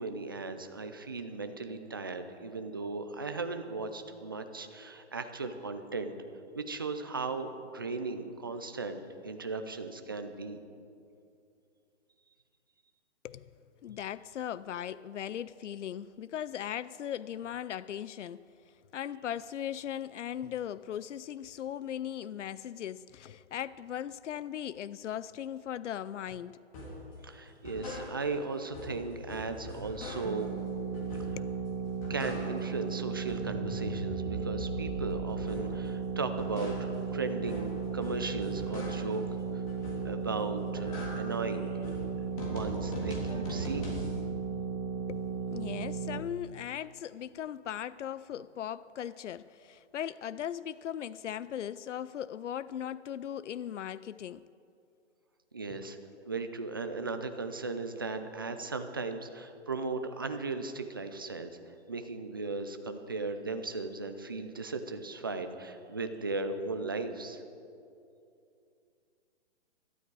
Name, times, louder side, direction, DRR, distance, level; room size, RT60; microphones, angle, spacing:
voice 1, 0.0-6.1 6.5-10.6 27.2-30.5 31.3-31.4 32.1-36.8 37.1-39.2 39.5-39.6 40.0-41.7 42.5-43.9 55.5-56.0 56.3-61.6 61.9-67.4, right 3 dB, 20° right, 0.4 m, -37 dB
voice 2, 13.2-18.5 18.9-26.6 31.4-31.6 45.1-54.4, left 10 dB, 85° left, 0.5 m, -38 dB
sound 1, 26.7-27.1 27.5-28.5 28.7-30.5 30.9-31.6 31.9-32.8 33.1-35.8 36.2-39.2 39.7-40.3 40.6-44.2, left 1 dB, 30° left, 3.1 m, -41 dB
sound 2, 30.2-46.2, right 6 dB, 35° right, 1.3 m, -35 dB
17.5 x 12.5 x 4.7 m
hypercardioid pair, 160°, 35 cm